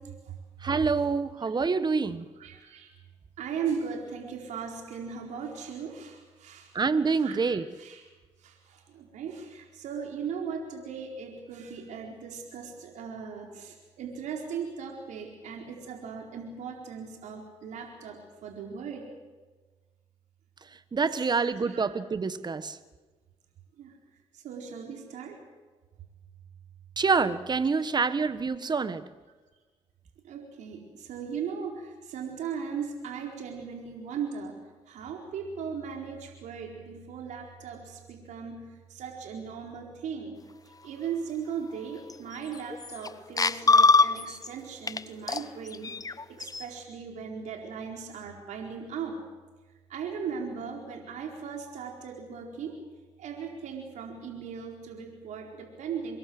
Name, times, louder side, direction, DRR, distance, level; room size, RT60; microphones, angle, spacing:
voice 1, 0.6-2.3 6.7-7.7 20.9-22.8 27.0-29.1, right 4 dB, 35° right, 14 dB, 1.6 m, -27 dB
voice 2, 2.4-2.9 3.4-6.7 7.2-8.0 8.4-19.1 21.2-21.9 23.8-23.9 24.3-25.4 30.2-34.5 34.9-40.4 40.8-49.2 49.9-52.8 53.2-56.2, right 6 dB, 75° right, 2 dB, 4.4 m, -38 dB
sound 1, 42.1-42.2 42.5-43.1 43.4-44.5 44.9-45.0 45.3-46.6, left 3 dB, 30° left, 1.1 m, -23 dB
25.0 x 21.5 x 8.0 m, 1.3 s
supercardioid pair, 65°, 13 cm